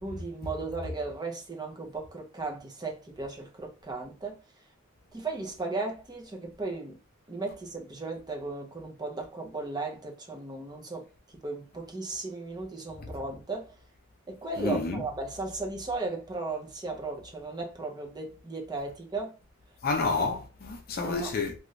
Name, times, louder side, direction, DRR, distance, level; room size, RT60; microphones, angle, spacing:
voice 1, 0.0-4.4 5.1-7.0 7.3-11.1 11.4-13.7 14.3-19.3 21.0-21.3, right 3 dB, 20° right, 0.6 m, -36 dB
voice 2, 14.6-15.0 19.8-21.5, left 3 dB, 45° left, 0.5 m, -29 dB
2.7 x 2.5 x 3.1 m
head